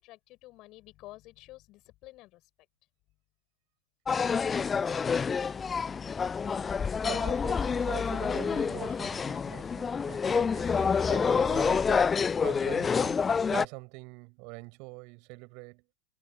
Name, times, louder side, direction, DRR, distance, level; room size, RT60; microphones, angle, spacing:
voice 1, 0.0-2.5, left 19 dB, 40° left, 6.7 m, -51 dB
sound 1, 4.1-13.7, left 6 dB, 20° left, 0.3 m, -28 dB
voice 2, 7.0-15.8, right 31 dB, 45° right, 6.9 m, -44 dB
figure-of-eight pair, 90°, 0 cm